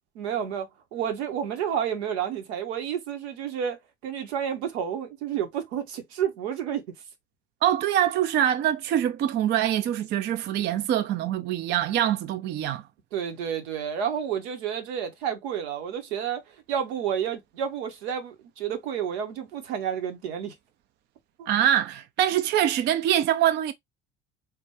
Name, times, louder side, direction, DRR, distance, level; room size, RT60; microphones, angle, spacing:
voice 1, 0.1-6.9 13.1-20.6 21.4-21.5, right 8 dB, 70° right, 0.9 m, -30 dB
voice 2, 7.6-12.8 21.5-23.7, right 11 dB, 35° right, 0.4 m, -24 dB
3.4 x 2.2 x 2.8 m
figure-of-eight pair, 60°, 34 cm